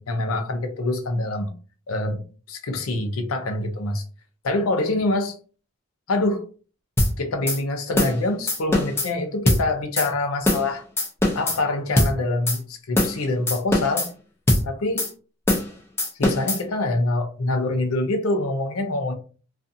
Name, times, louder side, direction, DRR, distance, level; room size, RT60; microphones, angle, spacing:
voice 1, 0.0-1.5 1.9-4.0 4.4-5.4 6.1-6.5 7.2-10.8 11.3-14.1 14.6-15.1 16.2-19.1, left 2 dB, 85° left, 0.6 m, -25 dB
sound 1, 7.0-7.1 7.5-7.6 8.0-8.2 8.5-9.1 9.5-9.6 10.0-10.1 10.5-10.7 11.0-11.6 12.0-12.1 12.5-12.6 13.0-13.2 13.5-14.1 14.5-14.6 15.0-15.1 15.5-15.7 16.0-16.6, left 1 dB, 10° left, 0.4 m, -21 dB
2.5 x 2.4 x 2.6 m
head